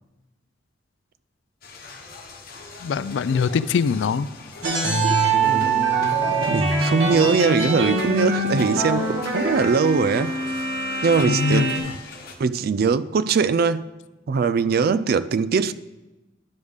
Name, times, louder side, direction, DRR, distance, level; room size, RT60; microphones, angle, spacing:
sound 1, 1.6-12.4, left 3 dB, 50° left, 1.1 m, -42 dB
voice 1, 2.8-4.3 11.3-11.9, left 5 dB, 70° left, 16 dB, 0.3 m, -23 dB
sound 2, 4.6-11.8, right 3 dB, 85° right, 1.7 m, -23 dB
voice 2, 6.5-10.3 11.0-11.7 12.4-13.9 14.3-15.7, right 5 dB, 55° right, 14 dB, 0.3 m, -21 dB
11.0 x 6.4 x 3.6 m, 1.0 s
head